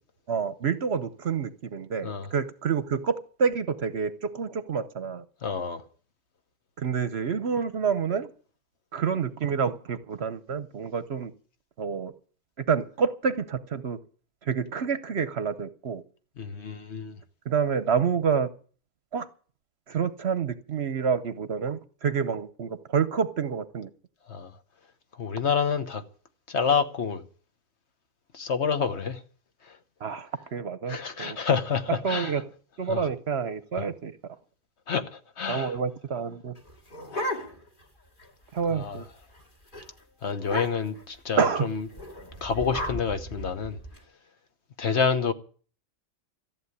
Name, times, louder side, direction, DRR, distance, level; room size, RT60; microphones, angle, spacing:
voice 1, 0.3-5.2 6.8-8.3 8.9-11.3 11.8-12.1 12.6-14.0 14.4-16.0 17.5-18.5 19.1-19.3 19.9-23.9 30.0-31.4 32.0-32.4 32.8-34.1 35.5-36.5 38.5-39.0 41.4-41.7, right 6 dB, 55° right, 1.0 m, -28 dB
voice 2, 5.4-5.8 16.4-17.2 24.3-24.5 25.2-26.0 26.5-27.2 28.3-29.2 29.7-29.8 30.9-32.4 32.9-33.1 34.9-35.8 37.1-37.4 38.7-39.0 40.2-41.9 42.4-43.8 44.8-45.3, left 6 dB, 55° left, 1.3 m, -28 dB
sound 1, 36.6-37.8 38.2-38.3 38.6-38.9 39.2-39.4 39.7-39.9 40.4-41.0 41.9-44.0, left 1 dB, 35° left, 2.6 m, -35 dB
14.5 x 7.7 x 9.6 m
omnidirectional pair, 1.4 m